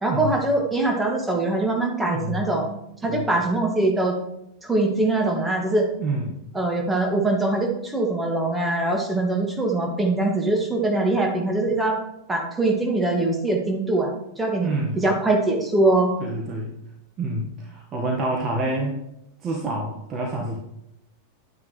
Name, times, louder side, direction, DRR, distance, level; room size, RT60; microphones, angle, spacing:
voice 1, 0.0-4.2 4.6-5.9 6.5-12.0 12.3-14.1 14.4-14.7 15.0-16.1, right 2 dB, 10° right, 0 dB, 2.1 m, -22 dB
voice 2, 2.1-2.5 3.1-3.3 6.0-6.4 14.6-15.0 16.2-16.7 17.2-19.0 19.4-20.6, right 2 dB, 30° right, -1 dB, 1.5 m, -27 dB
11.0 x 9.5 x 3.2 m, 0.82 s
figure-of-eight pair, 90°, 0 cm